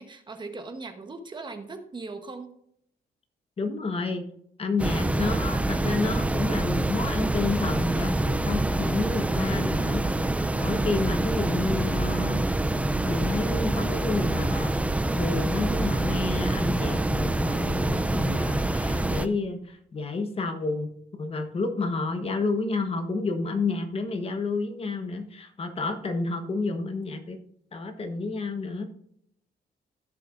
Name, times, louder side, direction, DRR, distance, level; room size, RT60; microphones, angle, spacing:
voice 1, 0.0-2.5, right 3 dB, 25° right, 6 dB, 1.1 m, -39 dB
voice 2, 3.6-4.2 4.6-10.0 10.6-12.5 13.0-14.8 15.1-20.9 21.2-27.4 27.7-28.8, left 3 dB, 35° left, 6 dB, 1.2 m, -30 dB
sound 1, 4.8-19.3, right 2 dB, 10° right, 0.4 m, -26 dB
15.0 x 6.7 x 2.5 m, 0.69 s
wide cardioid pair, 155°, 17 cm